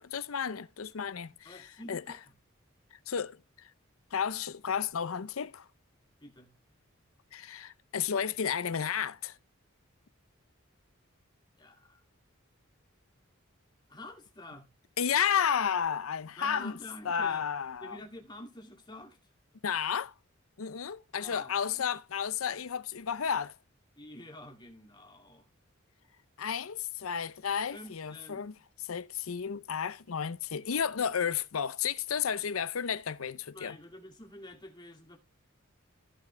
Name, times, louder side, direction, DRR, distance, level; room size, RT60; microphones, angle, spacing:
voice 1, 0.0-1.5 1.9-2.2 3.1-3.4 4.1-5.6 7.3-9.3 15.0-16.8 17.0-18.0 19.6-20.1 20.6-23.6 26.4-28.5 28.9-33.8, left 7 dB, 85° left, 0.6 m, -32 dB
voice 2, 1.4-2.2 6.2-6.5 11.6-12.0 13.9-14.7 16.4-17.4 17.8-19.2 21.2-21.8 24.0-25.5 27.7-28.4 33.5-35.2, left 1 dB, 20° left, 2.6 m, -48 dB
15.5 x 6.0 x 3.3 m
head